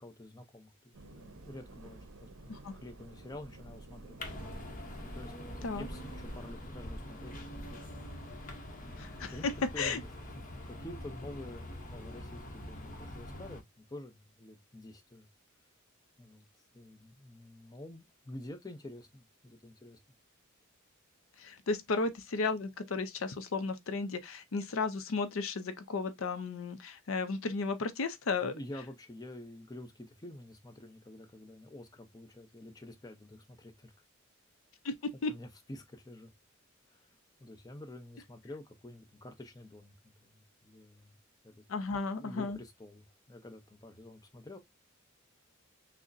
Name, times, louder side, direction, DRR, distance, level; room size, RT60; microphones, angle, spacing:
voice 1, 0.0-4.2 5.0-7.8 8.8-9.0 9.3-15.3 16.2-16.5 16.7-20.0 28.4-33.9 35.2-36.3 36.9-41.2 41.4-41.6 42.2-44.6, left 1 dB, 20° left, 0.6 m, -49 dB
sound 1, 0.9-6.6, right 2 dB, 75° right, 0.6 m, -52 dB
sound 2, 4.2-13.6, left 1 dB, 40° left, 0.9 m, -44 dB
voice 2, 9.0-9.5 9.8-10.0 21.4-28.5 34.8-35.3 41.7-42.6, left 4 dB, 70° left, 0.5 m, -34 dB
6.2 x 2.1 x 2.5 m
head